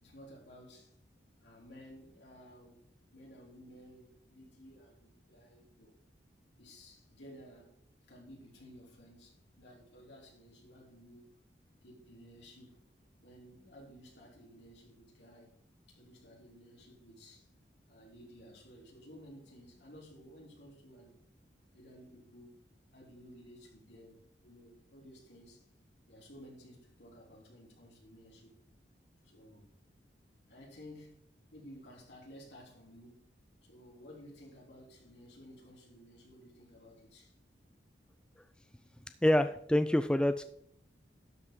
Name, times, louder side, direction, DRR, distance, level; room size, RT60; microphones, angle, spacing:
voice 1, 0.0-0.9 1.4-2.8 3.1-6.0 6.6-7.7 8.1-11.3 11.8-12.8 13.2-15.6 15.9-17.5 17.9-21.2 21.7-22.6 22.9-25.7 26.1-28.6 29.2-29.7 30.5-33.3 33.6-37.3, equal, 75° left, 3.7 m, -55 dB
voice 2, 39.2-40.4, left 1 dB, 5° left, 0.3 m, -26 dB
12.0 x 5.5 x 4.7 m
head